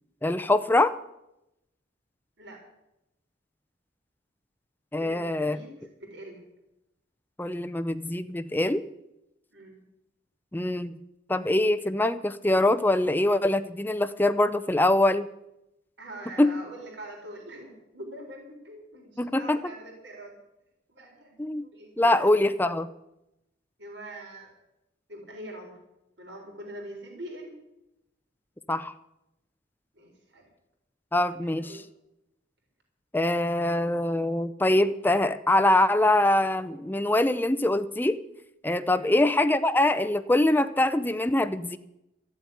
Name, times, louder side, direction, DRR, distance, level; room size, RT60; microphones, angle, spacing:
voice 1, 0.2-1.0 4.9-5.6 7.4-8.8 10.5-11.0 11.3-15.3 16.4-16.6 19.2-19.6 21.4-21.7 22.0-22.9 28.7-28.9 31.1-31.8 33.1-38.2 38.6-41.8, left 1 dB, 10° left, 11 dB, 0.5 m, -24 dB
voice 2, 5.0-6.4 9.5-9.8 16.0-20.3 20.9-21.4 21.6-22.4 23.8-24.5 25.1-25.8 26.2-27.6 29.9-30.5 31.4-31.8 38.9-39.2, right 1 dB, 75° right, 1 dB, 4.2 m, -43 dB
14.0 x 8.0 x 9.6 m, 0.87 s
head